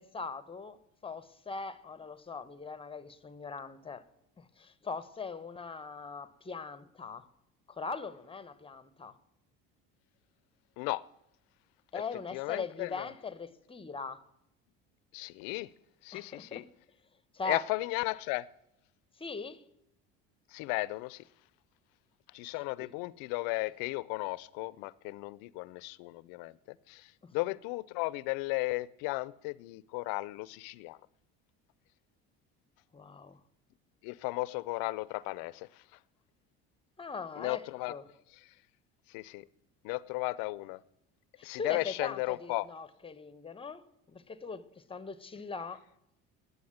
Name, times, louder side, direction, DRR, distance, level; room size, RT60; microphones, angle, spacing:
voice 1, 0.0-4.0 4.4-7.3 7.7-9.1 11.9-14.2 16.1-16.6 17.3-17.6 19.2-19.6 22.5-22.9 27.2-27.3 32.9-33.4 37.0-37.6 37.9-38.0 41.4-45.8, left 4 dB, 15° left, 0.8 m, -41 dB
voice 2, 12.3-13.1 15.1-15.7 16.0-16.6 17.5-18.5 20.5-21.2 22.3-26.5 26.9-27.1 27.3-31.0 34.0-35.7 37.4-38.0 39.1-39.4 39.8-40.8 41.4-42.7, left 22 dB, 75° left, 0.5 m, -35 dB
9.6 x 8.3 x 8.6 m
supercardioid pair, 95°, 34 cm